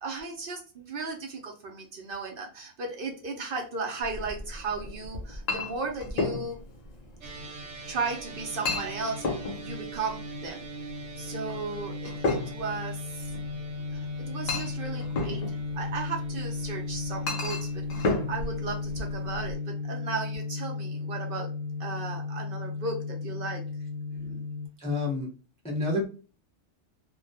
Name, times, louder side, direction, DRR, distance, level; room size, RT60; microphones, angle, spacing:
voice 1, 0.0-6.6 7.8-9.2 9.6-10.6 11.2-13.3 13.9-21.5 21.8-23.7 24.1-24.4, right 4 dB, 60° right, 1 dB, 0.7 m, -36 dB
Chink clink, 4.0-19.5, left 3 dB, 75° left, 0.3 m, -35 dB
sound 1, 7.2-24.7, left 3 dB, 75° right, 1.1 m, -35 dB
voice 2, 24.8-25.3 25.6-26.1, left 2 dB, 10° left, -3 dB, 0.5 m, -28 dB
2.3 x 2.1 x 2.6 m, 0.35 s
omnidirectional pair, 1.2 m